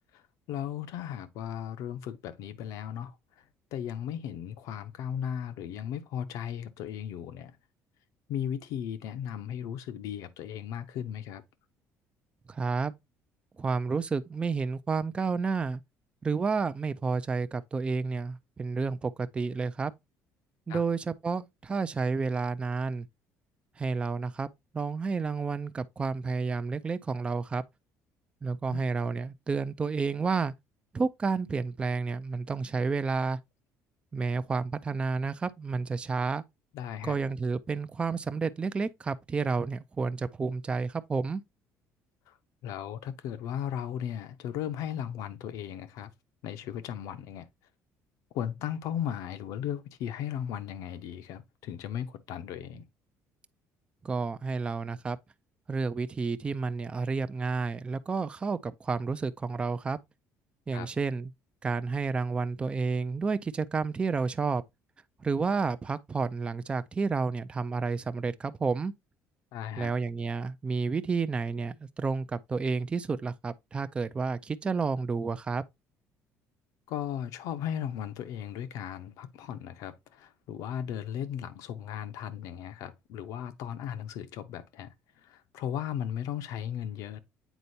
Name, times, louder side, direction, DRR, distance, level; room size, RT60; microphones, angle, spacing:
voice 1, 0.5-3.4 3.7-7.6 8.3-11.4 20.7-20.8 28.7-28.8 36.7-37.2 42.3-42.4 42.6-46.1 46.4-47.5 48.3-52.9 60.7-60.9 69.5-69.9 76.9-87.2, left 9 dB, 75° left, 0.8 m, -36 dB
voice 2, 12.5-12.9 13.6-15.8 16.2-19.9 20.7-23.1 23.8-24.5 24.7-27.6 28.4-30.5 30.9-33.4 34.1-36.4 37.0-41.4 54.0-55.2 55.7-60.0 60.7-61.3 61.6-64.6 65.2-68.9 69.8-75.6, right 4 dB, 20° right, 0.4 m, -30 dB
8.1 x 4.3 x 2.7 m
cardioid pair, 140°, 6 cm